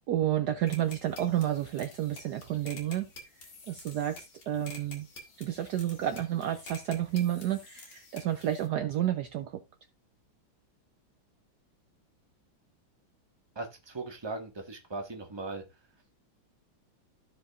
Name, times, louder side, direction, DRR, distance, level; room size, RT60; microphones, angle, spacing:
voice 1, 0.1-3.1 3.4-5.1 5.4-9.6, right 12 dB, 65° right, 1.1 m, -31 dB
sound 1, 0.7-8.7, left 2 dB, 75° left, 2.9 m, -49 dB
voice 2, 13.5-15.6, right 3 dB, 15° right, 1.4 m, -38 dB
15.5 x 5.1 x 2.5 m
omnidirectional pair, 2.1 m